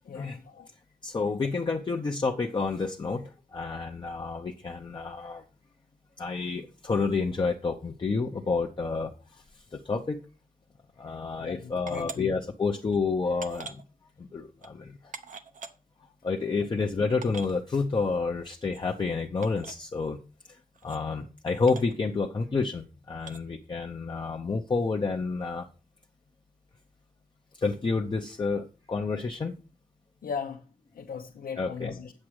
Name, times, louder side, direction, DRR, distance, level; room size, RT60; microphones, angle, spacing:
voice 1, 0.0-0.7 11.4-12.3 30.2-30.7 30.9-32.1, left 6 dB, 90° left, 0.9 m, -38 dB
voice 2, 1.0-5.4 6.2-9.4 9.7-10.2 11.0-13.8 14.2-15.1 16.2-20.2 20.5-25.7 27.6-29.5 31.6-31.9, left 4 dB, 35° left, 0.7 m, -29 dB
sound 1, 11.9-12.2 12.9-13.0 13.4-13.8 14.6-14.7 15.1-15.7 16.5-16.6 16.8-16.9 17.2-17.5 18.7-18.8 19.4-19.7 20.7-21.0 21.7-21.9 23.2-23.4, right 5 dB, 60° right, 0.8 m, -42 dB
8.5 x 7.5 x 4.8 m
wide cardioid pair, 160°, 15 cm